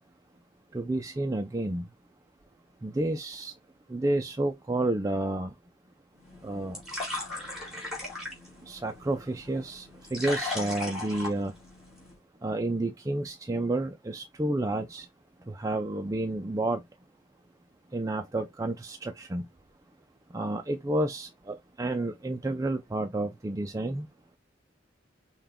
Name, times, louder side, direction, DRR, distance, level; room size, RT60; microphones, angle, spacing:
voice 1, 0.7-1.8 2.8-3.5 3.9-5.5 6.4-6.8 8.7-11.5 12.4-15.1 15.5-16.8 17.9-19.4 20.3-24.1, right 2 dB, 15° right, 0.3 m, -30 dB
sound 1, 6.2-12.2, left 2 dB, ahead, 2.4 m, -38 dB
5.6 x 2.3 x 3.4 m
head